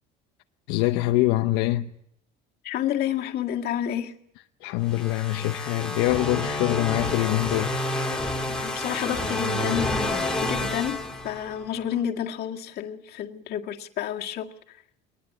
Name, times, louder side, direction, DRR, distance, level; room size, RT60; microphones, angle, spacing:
voice 1, 0.7-1.9 4.6-7.8, left 17 dB, 75° left, 0.9 m, -24 dB
voice 2, 2.6-4.1 8.5-14.8, left 10 dB, 50° left, 2.1 m, -30 dB
sound 1, 4.9-11.8, left 2 dB, 5° left, 2.4 m, -29 dB
22.0 x 20.5 x 7.5 m
cardioid pair, 130°, 21 cm